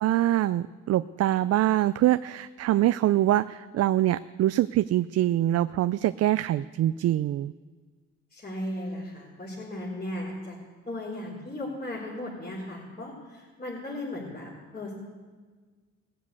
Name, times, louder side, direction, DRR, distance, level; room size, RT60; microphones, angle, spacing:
voice 1, 0.0-7.5, right 13 dB, 55° right, 14 dB, 0.4 m, -24 dB
voice 2, 8.3-10.5 10.9-14.9, left 1 dB, 30° left, -6 dB, 3.9 m, -36 dB
17.5 x 7.5 x 8.2 m, 1.5 s
cardioid pair, 90°, 30 cm